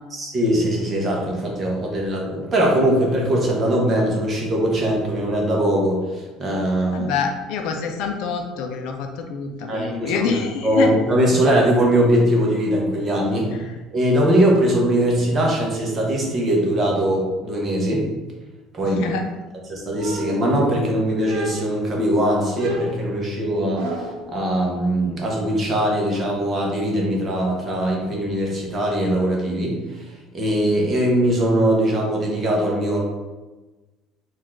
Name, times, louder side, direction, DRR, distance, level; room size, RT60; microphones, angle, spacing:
voice 1, 0.1-7.1 9.7-10.3 10.6-13.5 13.9-18.1 18.7-19.0 19.7-33.0, right 1 dB, 25° right, -2 dB, 0.8 m, -21 dB
voice 2, 6.9-10.9 13.5-13.8 19.0-19.2, left 6 dB, 60° left, 4 dB, 0.5 m, -26 dB
sound 1, 20.0-20.8 21.2-21.9 22.5-24.3, right 1 dB, 80° right, 0.8 m, -32 dB
4.2 x 2.5 x 4.3 m, 1.2 s
cardioid pair, 175°, 0 cm